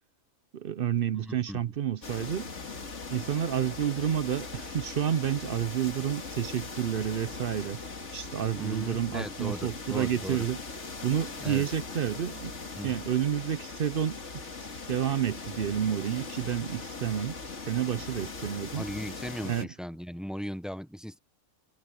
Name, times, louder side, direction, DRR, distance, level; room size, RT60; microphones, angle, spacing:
voice 1, 0.5-2.5 3.1-7.8 8.1-10.6 11.0-12.5 12.8-14.2 14.9-18.8 19.4-19.7, right 9 dB, 55° right, 0.6 m, -30 dB
voice 2, 1.1-1.6 8.5-10.4 11.4-11.7 12.8-13.0 18.8-21.2, equal, ahead, 0.6 m, -38 dB
sound 1, 2.0-19.7, left 4 dB, 55° left, 2.4 m, -40 dB
omnidirectional pair, 1.5 m